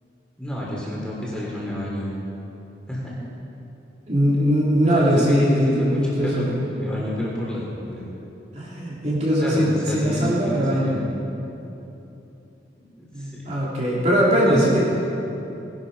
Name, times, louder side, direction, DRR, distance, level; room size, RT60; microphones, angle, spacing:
voice 1, 0.4-2.1 2.9-3.2 4.9-8.1 9.4-11.1 13.2-13.5 14.4-14.8, equal, 5° left, -6 dB, 3.5 m, -29 dB
voice 2, 4.1-6.5 8.5-11.0 13.1-14.8, equal, 40° right, -6 dB, 3.0 m, -20 dB
19.5 x 11.5 x 5.5 m, 2.9 s
head